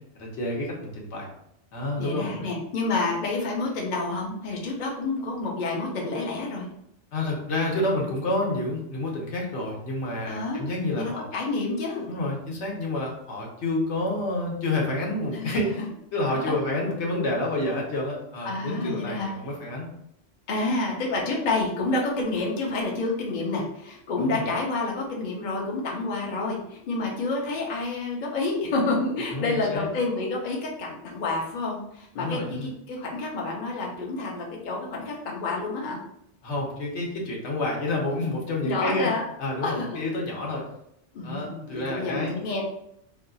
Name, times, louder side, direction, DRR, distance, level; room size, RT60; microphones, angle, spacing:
voice 1, 0.1-1.3 1.7-2.5 7.1-11.2 12.1-15.8 16.1-19.9 24.2-24.4 29.3-29.9 32.2-32.7 36.4-39.1 39.4-40.6 41.2-42.4, left 2 dB, 70° left, -2 dB, 1.1 m, -29 dB
voice 2, 2.0-6.7 10.3-10.7 10.9-12.1 15.3-15.5 16.3-16.4 18.4-19.3 20.5-36.0 38.6-39.2 39.6-40.0 41.1-42.7, left 3 dB, 50° left, -2 dB, 0.7 m, -29 dB
2.7 x 2.3 x 3.8 m, 0.76 s
omnidirectional pair, 1.2 m